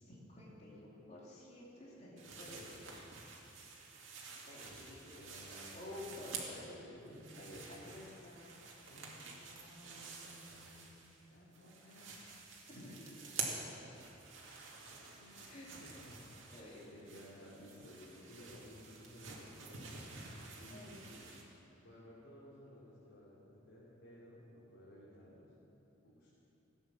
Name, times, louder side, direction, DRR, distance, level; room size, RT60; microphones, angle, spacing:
voice 1, 0.1-3.1 4.4-6.8 7.4-8.8 12.0-12.1 12.7-13.3 15.4-15.8 16.5-17.1 20.7-21.0, left 1 dB, 35° left, -6 dB, 3.1 m, -52 dB
sound 1, 2.2-6.7 7.1-11.2 11.5-21.4, right 4 dB, 75° right, 2.3 m, -49 dB
voice 2, 4.9-6.4 6.7-7.5 8.9-10.9 11.3-12.9 13.4-13.9 15.1-15.4 15.8-15.9 16.4-20.0 20.6-20.9 21.8-25.5 26.0-26.3, left 1 dB, 80° left, -8 dB, 3.3 m, -57 dB
16.5 x 9.5 x 7.2 m, 3.0 s
head